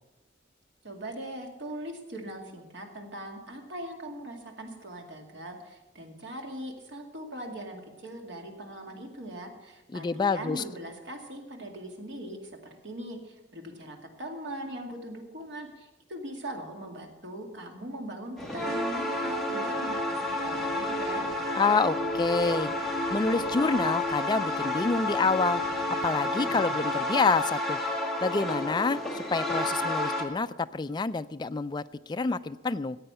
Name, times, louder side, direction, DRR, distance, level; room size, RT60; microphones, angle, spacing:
voice 1, 0.8-21.2, right 1 dB, 65° right, 2 dB, 2.3 m, -40 dB
voice 2, 9.9-10.6 21.6-22.7 23.1-27.8 28.2-33.0, left 4 dB, 25° left, 11 dB, 0.3 m, -28 dB
sound 1, 18.4-30.3, left 1 dB, ahead, 1.7 m, -30 dB
14.5 x 8.6 x 7.0 m, 1.1 s
head